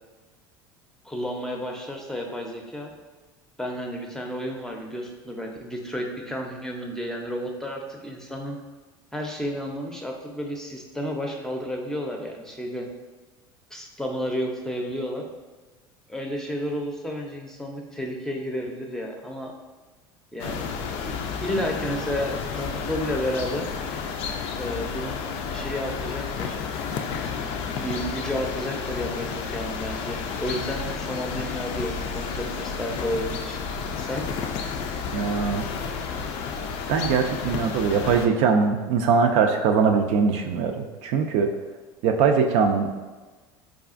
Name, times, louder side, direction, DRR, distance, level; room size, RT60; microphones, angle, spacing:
voice 1, 1.0-2.9 3.6-8.6 9.1-12.9 13.7-15.2 16.1-19.5 20.3-20.7 21.0-23.7 24.5-26.6 27.8-33.6 34.0-34.3, equal, 5° left, 1 dB, 0.6 m, -31 dB
sound 1, 20.4-38.3, left 6 dB, 55° left, 0.4 m, -31 dB
voice 2, 35.1-35.7 36.9-41.5 42.0-42.9, right 5 dB, 60° right, 4 dB, 0.4 m, -21 dB
4.7 x 2.4 x 2.4 m, 1.3 s
hypercardioid pair, 80°, 12 cm